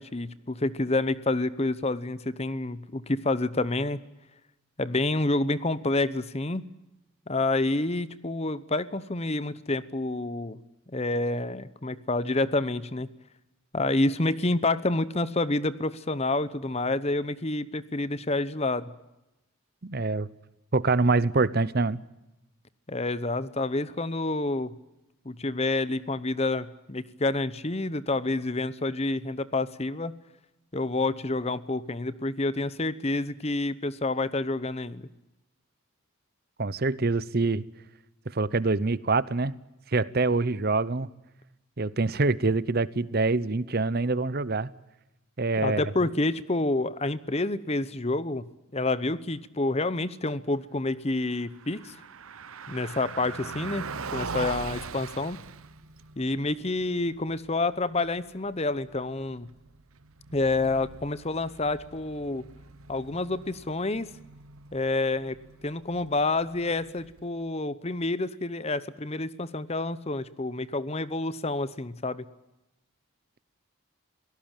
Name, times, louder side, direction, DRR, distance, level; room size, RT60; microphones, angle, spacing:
voice 1, 0.0-4.1 4.8-6.7 7.3-13.1 13.7-18.9 22.9-24.7 25.2-30.1 30.7-35.1 45.6-48.4 48.7-51.9 52.7-53.9 54.1-55.4 56.2-59.5 60.3-62.4 62.9-64.1 64.7-65.4 65.6-72.2, left 2 dB, 30° left, 16 dB, 0.8 m, -28 dB
voice 2, 19.8-20.3 20.7-22.0 36.6-37.6 38.3-39.5 39.9-41.1 41.8-44.7 45.4-45.8, right 3 dB, 45° right, 18 dB, 0.8 m, -25 dB
Car passing by, 51.3-67.4, right 5 dB, 75° right, 0.9 m, -42 dB
26.5 x 18.0 x 8.9 m, 0.96 s
head